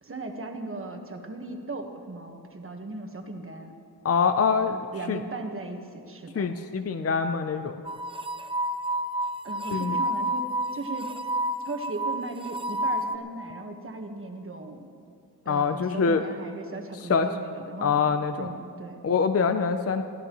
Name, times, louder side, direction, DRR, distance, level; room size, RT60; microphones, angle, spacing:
voice 1, 0.0-3.7 4.7-6.5 9.4-11.1 11.6-14.9 15.4-18.0 18.4-19.0, right 2 dB, 35° right, 4 dB, 1.4 m, -37 dB
voice 2, 4.0-4.8 5.1-5.2 6.3-7.8 9.7-10.0 15.5-16.2 17.1-17.3 17.8-18.5 19.0-20.0, left 5 dB, 40° left, 8 dB, 0.5 m, -24 dB
sound 1, 7.9-13.2, right 1 dB, 15° right, 0.6 m, -30 dB
23.0 x 16.0 x 3.1 m, 2.5 s
wide cardioid pair, 140°, 39 cm